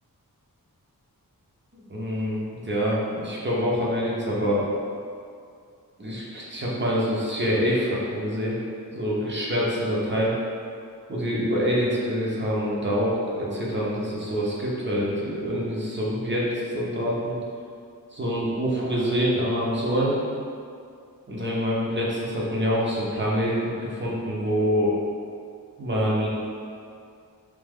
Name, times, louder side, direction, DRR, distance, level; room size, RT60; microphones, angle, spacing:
voice 1, 1.7-4.6 6.0-8.6 8.9-10.3 11.1-17.4 18.1-20.2 21.3-24.9 25.8-26.3, equal, 30° right, -5 dB, 0.9 m, -26 dB
3.4 x 2.9 x 3.5 m, 2.3 s
wide cardioid pair, 90°, 35 cm